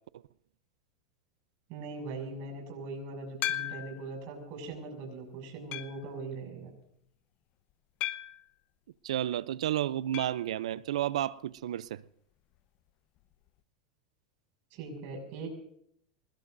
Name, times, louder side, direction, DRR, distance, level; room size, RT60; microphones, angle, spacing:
voice 1, 1.7-6.7 14.7-15.5, right 3 dB, 55° right, 6.5 m, -41 dB
sound 1, 3.4-4.1 4.7-4.8 5.7-6.1 8.0-8.5 10.1-10.4 10.7-10.8 11.0-11.1 13.2-13.3, left 14 dB, 50° left, 0.9 m, -36 dB
voice 2, 9.0-12.0, right 12 dB, 80° right, 0.6 m, -31 dB
26.0 x 20.5 x 2.7 m
hypercardioid pair, 110°, 3 cm